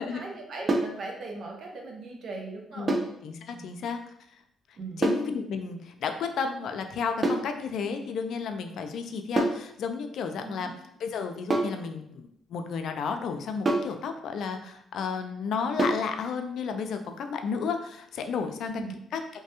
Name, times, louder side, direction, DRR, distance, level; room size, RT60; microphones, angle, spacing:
voice 1, 0.0-2.9 3.5-3.6 4.8-5.0 10.4-10.7 18.6-18.9, right 3 dB, 60° right, 0 dB, 0.7 m, -39 dB
sound 1, 0.7-1.0 2.9-3.2 5.0-5.3 7.2-7.5 9.4-9.7 11.5-11.8 13.7-14.0 15.8-16.1, right 2 dB, 30° right, 0.4 m, -26 dB
voice 2, 3.2-4.0 5.0-10.7 11.0-18.8 19.1-19.2, left 5 dB, 70° left, 6 dB, 0.3 m, -32 dB
3.2 x 2.2 x 2.8 m, 0.73 s
cardioid pair, 90°, 0 cm